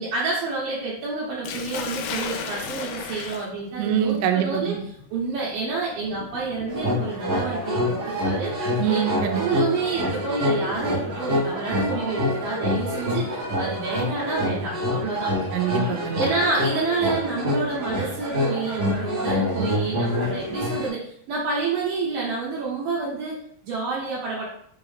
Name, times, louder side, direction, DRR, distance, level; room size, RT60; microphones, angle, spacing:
voice 1, 0.0-4.8 5.1-9.0 9.4-15.3 16.2-24.5, right 3 dB, 75° right, -6 dB, 2.4 m, -28 dB
Sink (filling or washing), 1.4-11.4 12.5-12.8 13.3-13.4 14.9-16.4, left 6 dB, 90° left, 2.0 m, -38 dB
voice 2, 3.8-4.8 8.8-9.4 15.5-16.2, right 9 dB, 90° right, 5 dB, 2.7 m, -24 dB
sound 1, 6.7-20.9, left 1 dB, 55° right, 1.0 m, -26 dB
6.2 x 2.5 x 3.2 m, 0.66 s
omnidirectional pair, 4.7 m